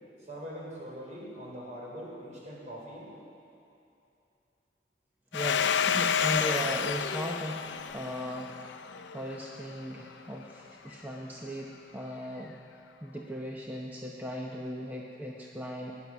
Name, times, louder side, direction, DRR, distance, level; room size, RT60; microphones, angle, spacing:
voice 1, 0.3-3.1, equal, 45° right, -4 dB, 4.1 m, -42 dB
Domestic sounds home sounds, 5.3-9.7, left 7 dB, 80° left, 0.5 m, -30 dB
voice 2, 5.3-8.6 9.1-12.6 13.0-15.9, equal, 10° right, -1 dB, 0.8 m, -37 dB
17.0 x 10.5 x 6.1 m, 2.7 s
head